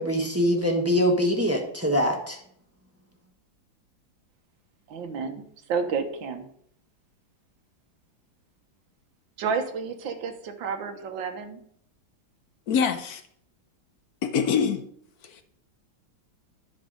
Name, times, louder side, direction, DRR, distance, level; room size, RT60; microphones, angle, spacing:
voice 1, 0.0-2.4, equal, 10° right, 2 dB, 1.1 m, -23 dB
voice 2, 4.9-6.5 9.4-11.6, right 5 dB, 80° right, 6 dB, 1.7 m, -31 dB
voice 3, 12.7-13.2 14.2-14.8 15.2-15.4, left 6 dB, 60° left, 8 dB, 1.1 m, -24 dB
10.5 x 5.4 x 5.2 m, 0.66 s
omnidirectional pair, 2.1 m